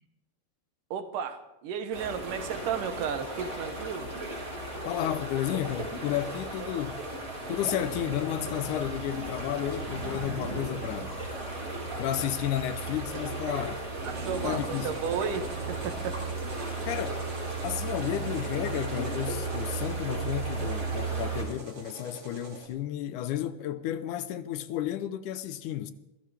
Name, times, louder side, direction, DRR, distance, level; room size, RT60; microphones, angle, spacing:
voice 1, 0.9-4.1 6.6-6.8 13.4-13.6 14.0-16.2, right 7 dB, 85° right, 2.8 m, -34 dB
sound 1, 1.9-21.4, right 3 dB, 25° right, 4.7 m, -35 dB
voice 2, 4.9-7.0 7.5-11.2 12.0-13.8 14.4-14.9 16.9-17.2 17.6-25.9, left 11 dB, 80° left, 2.3 m, -32 dB
sound 2, 14.0-22.7, right 2 dB, 45° right, 4.0 m, -45 dB
27.5 x 15.0 x 3.4 m
omnidirectional pair, 3.6 m